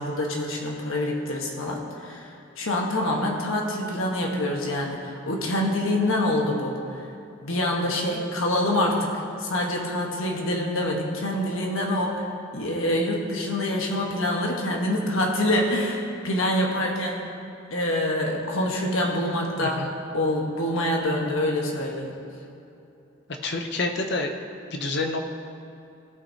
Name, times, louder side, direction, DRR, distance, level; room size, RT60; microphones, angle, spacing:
voice 1, 0.0-6.8 7.4-12.2 12.5-17.3 17.7-19.8 20.1-22.1, left 1 dB, 75° left, 0 dB, 1.3 m, -26 dB
voice 2, 19.6-19.9 23.4-24.3 24.7-25.2, left 2 dB, 50° left, 4 dB, 0.7 m, -28 dB
17.5 x 5.9 x 2.8 m, 2.7 s
head